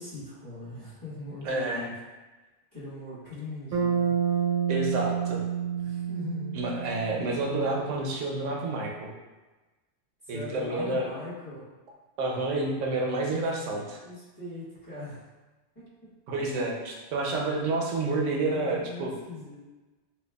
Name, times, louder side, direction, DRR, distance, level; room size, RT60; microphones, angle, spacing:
voice 1, 0.0-1.8 2.7-4.1 5.8-6.6 10.3-11.7 14.0-15.2 15.7-15.9 17.6-17.9 18.4-19.7, left 2 dB, 15° left, -11 dB, 1.2 m, -40 dB
voice 2, 1.4-1.9 4.7-5.4 6.5-9.1 10.3-11.1 12.2-14.0 16.3-19.1, right 2 dB, 80° right, -1 dB, 1.0 m, -29 dB
Bass guitar, 3.7-7.8, right 7 dB, 45° right, 0.8 m, -29 dB
4.5 x 2.3 x 2.2 m, 1.2 s
omnidirectional pair, 1.2 m